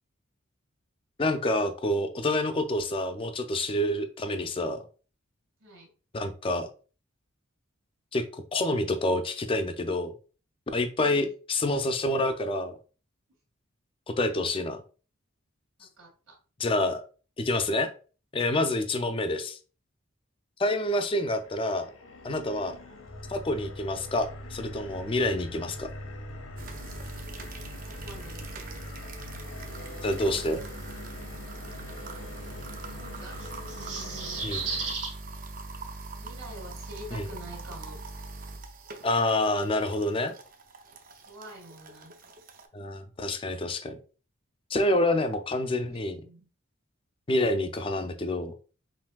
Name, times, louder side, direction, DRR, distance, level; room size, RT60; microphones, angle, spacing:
voice 1, 1.2-4.8 6.1-6.7 8.1-8.3 8.5-10.1 10.7-12.8 14.1-14.8 16.6-17.0 17.4-17.9 18.3-19.6 20.6-21.9 22.2-22.8 23.3-25.9 30.0-30.6 34.4-34.6 37.1-37.3 39.0-40.4 42.7-44.0 44.7-46.2 47.3-48.5, left 1 dB, 25° left, 7 dB, 0.4 m, -27 dB
voice 2, 11.0-11.3 15.8-16.4 22.6-22.9 27.8-28.8 32.9-33.4 33.7-34.5 36.2-38.0 41.3-42.3 45.9-46.5, right 1 dB, 75° right, -1 dB, 1.8 m, -47 dB
sound 1, 20.8-34.9, left 2 dB, 80° left, 0.8 m, -43 dB
sound 2, 26.6-42.7, right 3 dB, 45° right, 0.5 m, -42 dB
sound 3, 33.4-35.1, right 4 dB, 60° right, 1.3 m, -34 dB
5.7 x 2.6 x 2.3 m, 0.37 s
head